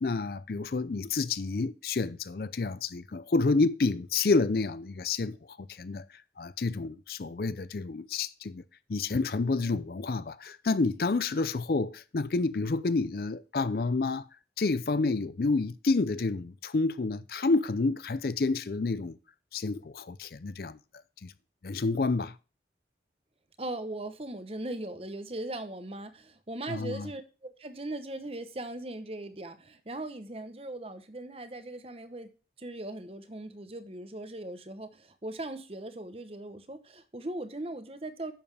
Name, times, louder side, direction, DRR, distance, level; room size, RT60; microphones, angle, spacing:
voice 1, 0.0-6.1 6.4-8.6 8.9-14.3 14.6-19.2 19.5-20.8 21.2-21.3 21.6-22.3 26.7-27.1, left 3 dB, 55° left, 0.5 m, -29 dB
voice 2, 23.6-32.3 32.6-38.3, right 1 dB, 35° right, 0.9 m, -39 dB
10.5 x 7.1 x 3.4 m
head